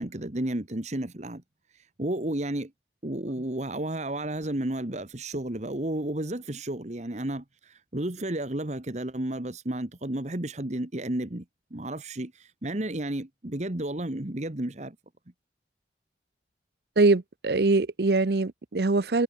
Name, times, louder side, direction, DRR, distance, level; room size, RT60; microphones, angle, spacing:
voice 1, 0.0-1.4 1.7-2.7 3.0-11.4 11.7-15.0, right 1 dB, 40° right, 1.6 m, -32 dB
voice 2, 17.0-19.2, right 3 dB, 60° right, 0.7 m, -23 dB
head